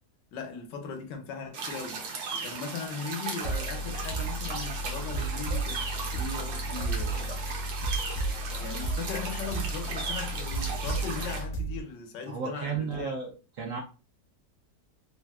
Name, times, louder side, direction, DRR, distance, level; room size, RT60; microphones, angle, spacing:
voice 1, 0.3-2.1 2.4-7.4 8.6-13.2, left 5 dB, 80° left, 1.3 m, -38 dB
sound 1, 1.5-11.4, right 4 dB, 90° right, 1.5 m, -37 dB
sound 2, 3.4-11.8, right 1 dB, 60° left, 0.8 m, -33 dB
voice 2, 12.3-13.8, right 6 dB, 65° right, 0.8 m, -33 dB
3.4 x 2.3 x 2.3 m
omnidirectional pair, 1.9 m